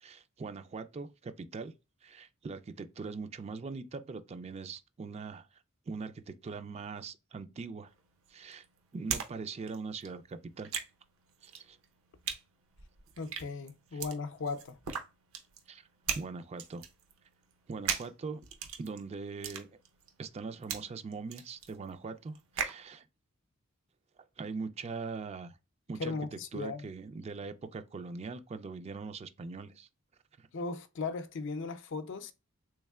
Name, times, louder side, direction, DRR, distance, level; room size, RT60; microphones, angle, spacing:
voice 1, 0.0-1.7 2.0-5.5 5.9-7.9 8.3-8.6 8.9-10.7 11.4-11.8 13.9-14.0 15.7-15.9 16.1-16.8 17.7-18.4 18.8-19.7 20.2-23.0 24.4-25.6 25.9-26.2 26.5-29.9 30.4-30.5, right 4 dB, 30° right, 0.3 m, -41 dB
sound 1, 7.9-9.3 9.6-22.8, right 7 dB, 80° right, 0.7 m, -39 dB
voice 2, 13.2-14.8 26.0-26.9 30.5-32.3, left 4 dB, 60° left, 0.5 m, -37 dB
3.5 x 3.2 x 2.3 m
head